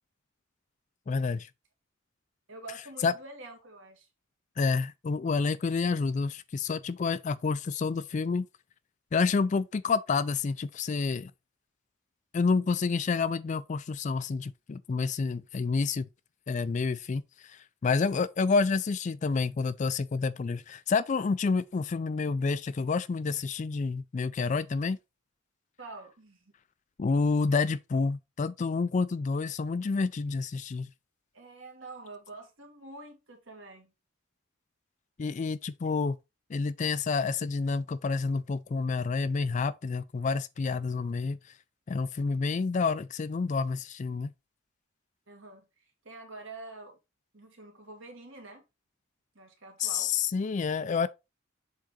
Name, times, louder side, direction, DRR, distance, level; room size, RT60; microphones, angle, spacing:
voice 1, 1.1-1.5 3.0-3.1 4.6-8.5 9.1-11.3 12.3-16.1 16.5-25.0 27.0-30.9 35.2-36.2 36.5-41.4 41.9-44.3 49.8-51.1, left 4 dB, 35° left, 0.3 m, -29 dB
voice 2, 2.5-4.1 25.8-26.4 31.3-33.9 45.3-45.7 46.0-47.0 47.3-48.6 49.3-50.1, right 2 dB, 70° right, 2.0 m, -46 dB
7.5 x 3.8 x 3.7 m
head